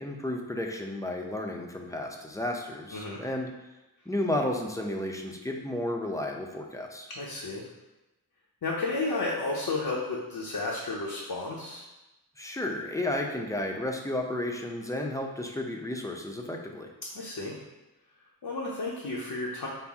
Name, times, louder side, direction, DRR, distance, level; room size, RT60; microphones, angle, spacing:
voice 1, 0.0-3.5 4.1-7.1 12.4-16.9, left 1 dB, 10° left, 1 dB, 0.5 m, -32 dB
voice 2, 2.9-3.2 7.1-7.6 8.6-11.8 17.1-17.6 18.4-19.7, left 3 dB, 70° left, -4 dB, 0.7 m, -32 dB
5.6 x 2.0 x 3.5 m, 1.0 s
wide cardioid pair, 55°, 38 cm